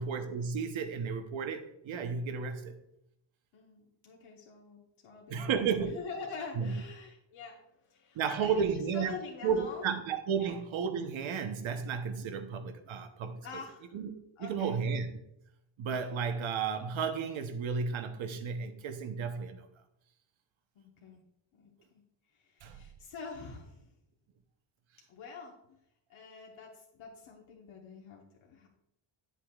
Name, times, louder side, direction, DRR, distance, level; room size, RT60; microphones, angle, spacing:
voice 1, 0.0-2.7 5.3-5.9 6.6-6.8 8.1-9.1 9.4-13.4 13.9-14.1 14.4-15.1 15.8-19.7 22.6-22.8, right 6 dB, 70° right, 8 dB, 1.0 m, -33 dB
voice 2, 3.5-9.9 10.4-10.5 12.2-12.3 13.4-14.0 14.4-14.8 20.7-21.2 21.5-22.0 22.3-23.9 25.1-25.8 26.1-28.7, left 5 dB, 75° left, -1 dB, 1.3 m, -46 dB
8.2 x 8.2 x 2.4 m, 0.80 s
cardioid pair, 140°, 49 cm